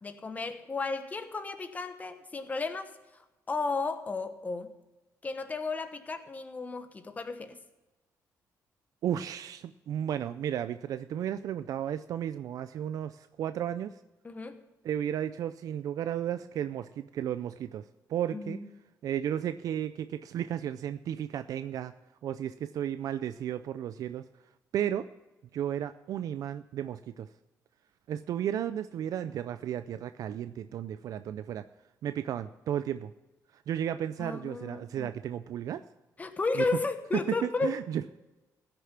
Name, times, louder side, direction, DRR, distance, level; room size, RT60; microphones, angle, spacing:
voice 1, 0.0-3.2 3.5-4.7 5.2-7.6 14.2-14.7 18.3-18.7 34.2-35.2 36.2-37.8, left 3 dB, 25° left, 8 dB, 1.1 m, -34 dB
voice 2, 9.0-13.9 14.8-18.6 19.0-21.9 22.2-24.2 24.7-25.1 25.5-27.3 28.1-31.6 32.0-33.1 33.7-35.8 36.5-36.6 37.3-38.2, right 10 dB, 65° right, 12 dB, 0.4 m, -33 dB
15.5 x 6.8 x 5.8 m, 1.0 s
cardioid pair, 125°, 6 cm